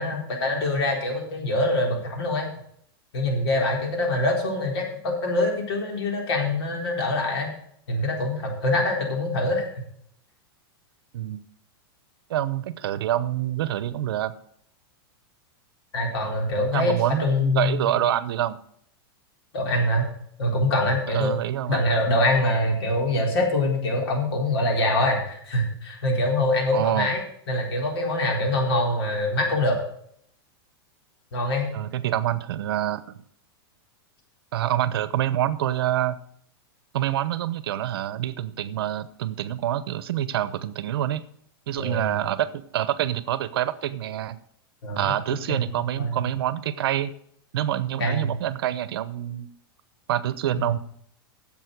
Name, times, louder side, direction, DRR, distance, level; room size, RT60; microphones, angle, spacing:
voice 1, 0.0-2.5 3.1-7.5 7.9-9.6 15.9-17.9 19.5-20.1 20.4-21.4 21.7-29.8 31.3-31.7 41.8-42.1 44.8-45.0 45.5-45.6 45.9-46.2 48.0-48.3 50.6-50.7, left 1 dB, 80° left, 1 dB, 4.0 m, -24 dB
voice 2, 12.3-14.3 16.7-18.6 21.1-22.0 26.7-27.1 31.7-33.2 34.5-36.2 36.9-41.2 41.7-44.4 45.0-47.1 47.5-49.5 50.1-50.8, right 12 dB, 70° right, 15 dB, 0.9 m, -26 dB
10.5 x 7.6 x 6.5 m, 0.67 s
supercardioid pair, 165°, 13 cm